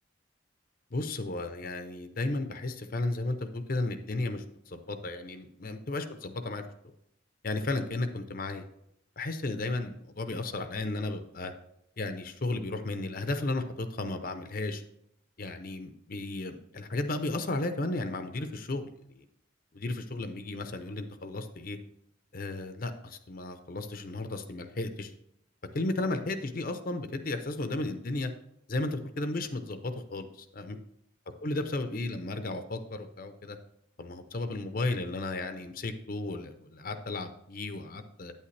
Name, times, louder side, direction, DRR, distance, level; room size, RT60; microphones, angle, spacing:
voice 1, 0.9-6.9 7.4-8.6 9.2-11.5 12.0-14.8 15.4-19.2 19.7-21.8 22.3-25.1 25.7-28.3 28.7-30.8 31.4-33.6 34.0-38.3, left 2 dB, 45° left, 8 dB, 0.6 m, -34 dB
9.1 x 8.5 x 3.3 m, 0.76 s
head